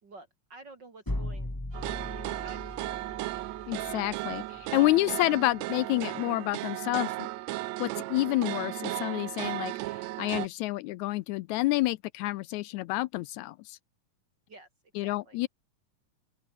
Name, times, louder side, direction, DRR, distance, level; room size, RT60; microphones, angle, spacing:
voice 1, 0.0-3.4 14.5-14.7 15.0-15.4, right 3 dB, 35° right, 2.3 m, -51 dB
sound 1, 1.1-4.9, left 1 dB, 5° left, 1.9 m, -38 dB
sound 2, 1.7-7.5, right 4 dB, 50° right, 6.3 m, -63 dB
sound 3, 1.7-10.5, right 18 dB, 90° right, 1.5 m, -35 dB
voice 2, 3.7-7.3 7.8-9.7 10.2-13.8 14.9-15.5, left 18 dB, 85° left, 1.7 m, -29 dB
open air
omnidirectional pair, 3.8 m